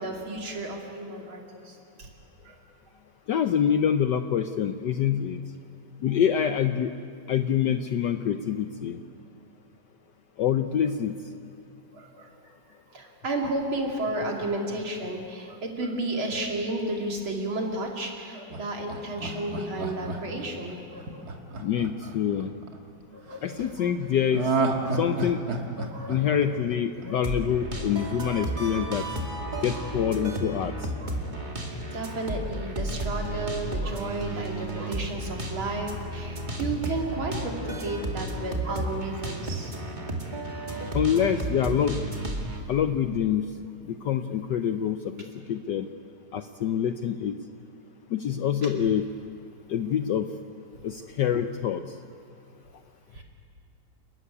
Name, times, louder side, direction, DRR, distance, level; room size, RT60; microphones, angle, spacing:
voice 1, 0.0-2.1 2.4-2.6 11.9-12.3 12.9-21.2 23.1-23.9 24.4-24.5 24.7-25.0 25.8-26.4 27.0-27.2 28.7-28.8 29.7-29.9 31.0-31.1 31.9-39.7 48.6-48.7 53.1-53.2, right 2 dB, 65° right, 0 dB, 3.4 m, -33 dB
voice 2, 3.3-5.4 6.0-6.9 7.3-9.0 10.4-11.1 21.6-22.5 23.4-24.5 24.9-25.4 26.1-29.0 29.6-30.7 40.9-42.1 42.7-43.5 43.8-45.9 46.3-47.3 48.1-49.1 49.7-50.3 50.8-51.8, left 9 dB, 70° left, 8 dB, 1.1 m, -26 dB
Laughter, 18.5-22.7 24.3-27.3 27.7-27.8, right 3 dB, 45° right, 2.2 m, -30 dB
sound 1, 27.2-42.6, right 1 dB, 20° right, 2.3 m, -33 dB
29.5 x 14.0 x 9.7 m, 2.5 s
omnidirectional pair, 2.4 m